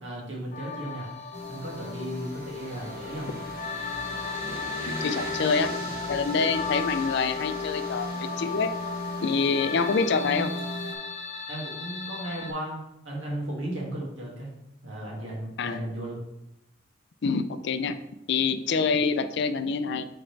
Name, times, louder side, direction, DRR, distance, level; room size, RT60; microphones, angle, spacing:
voice 1, 0.0-1.1 1.5-3.3 11.5-14.5 14.8-16.2, right 1 dB, 80° right, -3 dB, 2.2 m, -35 dB
sound 1, 0.5-12.5, left 5 dB, 40° left, 0.8 m, -36 dB
sound 2, 1.3-10.9, left 1 dB, 50° right, 1.3 m, -36 dB
voice 2, 4.9-5.7 6.1-8.7 9.2-10.5 15.6-15.8 17.2-18.0 18.3-20.1, left 5 dB, 65° left, 10 dB, 0.4 m, -26 dB
7.6 x 4.4 x 3.3 m, 0.87 s
head